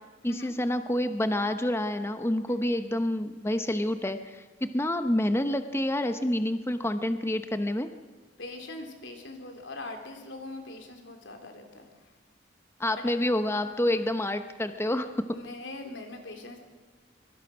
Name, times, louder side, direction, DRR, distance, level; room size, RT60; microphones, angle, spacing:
voice 1, 0.2-7.9 12.8-15.3, left 1 dB, 15° left, 9 dB, 0.8 m, -28 dB
voice 2, 8.4-11.9 13.0-13.1 13.8-13.9 15.3-16.6, left 2 dB, 80° left, 4 dB, 3.8 m, -42 dB
25.0 x 22.0 x 6.1 m, 1.4 s
head